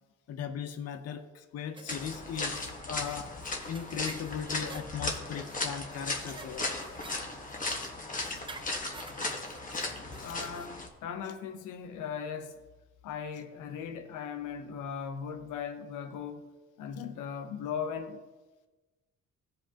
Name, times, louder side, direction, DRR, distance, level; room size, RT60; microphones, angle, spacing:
voice 1, 0.3-3.3 3.7-6.7 7.7-7.8 8.2-8.4 9.7-9.9 10.2-10.3, left 8 dB, 55° left, 0.7 m, -38 dB
sound 1, 1.8-10.7, right 3 dB, 15° right, 0.6 m, -51 dB
sound 2, 1.9-10.9, left 2 dB, 25° left, 1.3 m, -36 dB
voice 2, 10.2-12.6 13.0-16.4 16.8-18.2, left 7 dB, 85° left, 0.9 m, -38 dB
15.0 x 5.3 x 2.9 m
cardioid pair, 90°, 30 cm